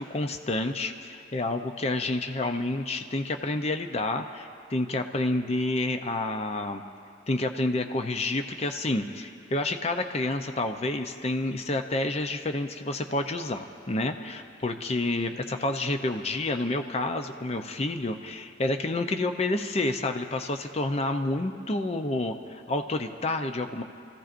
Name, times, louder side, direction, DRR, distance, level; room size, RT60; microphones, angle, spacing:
voice 1, 0.0-6.8 7.3-23.8, left 2 dB, 35° left, 6 dB, 0.6 m, -29 dB
29.5 x 15.0 x 2.6 m, 2.5 s
head